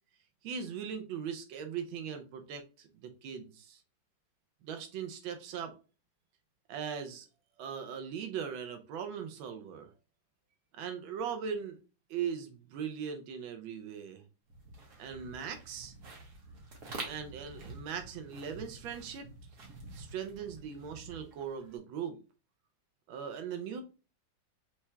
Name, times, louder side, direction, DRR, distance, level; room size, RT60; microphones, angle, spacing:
voice 1, 0.4-3.8 4.6-5.7 6.7-7.3 7.6-9.9 10.7-11.8 12.1-14.2 15.0-15.9 17.0-19.3 19.9-22.2 23.1-23.8, right 7 dB, 85° right, 1.5 m, -39 dB
sound 1, 14.5-21.8, right 3 dB, 55° right, 1.7 m, -48 dB
5.7 x 3.4 x 2.2 m
omnidirectional pair, 2.1 m